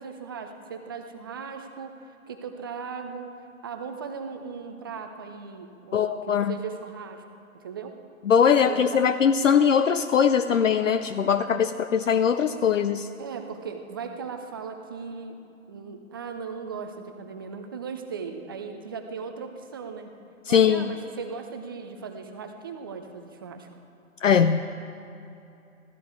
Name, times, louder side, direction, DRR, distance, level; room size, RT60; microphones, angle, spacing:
voice 1, 0.0-1.9 2.3-7.2 7.5-7.9 8.6-9.0 13.2-15.3 15.7-20.1 20.5-23.7, right 5 dB, 15° right, 6 dB, 0.5 m, -38 dB
voice 2, 5.9-6.6 8.3-13.1 20.5-20.9 24.2-24.6, left 7 dB, 65° left, 10 dB, 0.6 m, -21 dB
16.0 x 13.0 x 4.7 m, 2.7 s
figure-of-eight pair, 125°, 42 cm